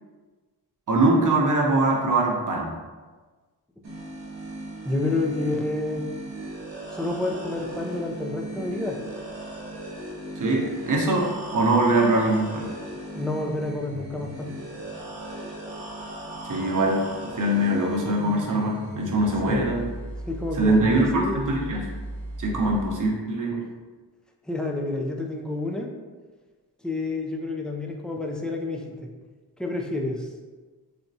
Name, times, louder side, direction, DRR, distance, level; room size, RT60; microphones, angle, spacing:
voice 1, 0.9-2.8 10.4-12.7 16.5-17.0 17.4-19.9 20.5-21.8 22.4-23.6, right 2 dB, 45° right, -1 dB, 0.8 m, -22 dB
sound 1, 3.8-22.9, right 2 dB, 90° right, 0.9 m, -37 dB
voice 2, 4.8-6.1 6.9-9.0 13.2-14.5 19.4-19.7 20.3-21.4 24.5-25.9 26.8-29.1 29.6-30.3, left 2 dB, ahead, 0 dB, 0.3 m, -29 dB
4.1 x 2.2 x 2.7 m, 1.3 s
cardioid pair, 70°, 42 cm